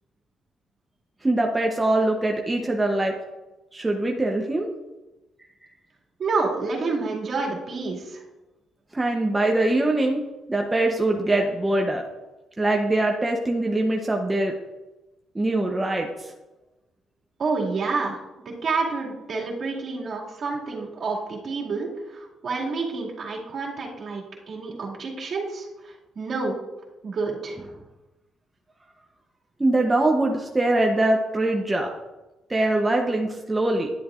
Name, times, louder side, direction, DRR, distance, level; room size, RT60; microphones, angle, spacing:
voice 1, 1.2-3.2 3.7-4.7 8.9-10.2 10.5-12.1 12.6-14.5 15.3-16.3 29.6-31.9 32.5-33.9, right 2 dB, 15° right, 1 dB, 0.8 m, -23 dB
voice 2, 6.2-8.2 17.4-18.2 18.4-26.6 27.0-27.6, right 4 dB, 55° right, -3 dB, 2.3 m, -29 dB
10.5 x 7.7 x 2.5 m, 1.1 s
cardioid pair, 90°, 0 cm